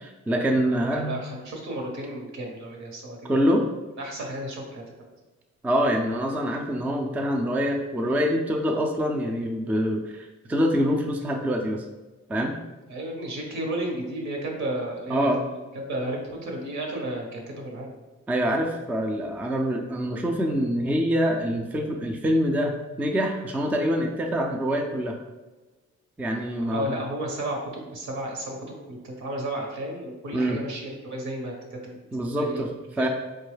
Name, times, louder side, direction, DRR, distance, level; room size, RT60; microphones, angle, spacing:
voice 1, 0.0-1.2 3.2-3.7 5.6-11.8 12.3-12.5 15.1-15.4 18.3-25.1 26.2-27.0 30.3-30.6 32.1-33.1, equal, 5° right, 2 dB, 0.3 m, -25 dB
voice 2, 0.9-3.5 4.0-5.1 12.9-15.3 15.8-17.9 26.7-31.9 32.4-32.6 33.0-33.1, right 1 dB, 65° right, 0 dB, 1.0 m, -33 dB
4.2 x 2.3 x 3.2 m, 1.2 s
cardioid pair, 90°, 30 cm